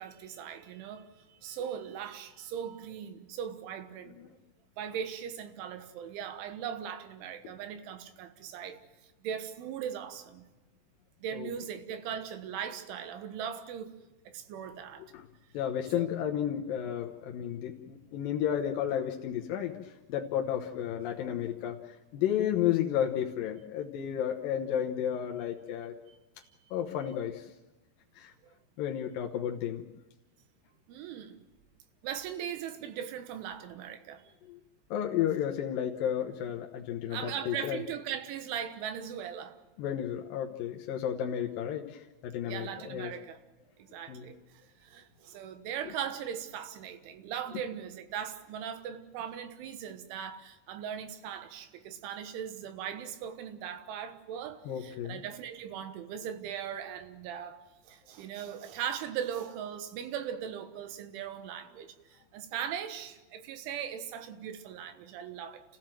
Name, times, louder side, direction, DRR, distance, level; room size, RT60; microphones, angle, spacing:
voice 1, 0.0-4.2 4.8-8.8 9.2-10.4 11.2-13.9 14.3-15.1 16.0-16.2 30.9-31.4 32.0-34.3 37.1-39.6 42.4-43.4 43.8-65.6, right 8 dB, 90° right, 3.8 m, -39 dB
voice 2, 15.5-26.0 26.7-27.5 28.2-28.3 28.8-29.8 34.5-34.6 34.9-37.8 39.8-43.1 44.1-44.3 54.7-55.2, left 10 dB, 70° left, 2.2 m, -32 dB
29.5 x 15.5 x 7.6 m
omnidirectional pair, 5.3 m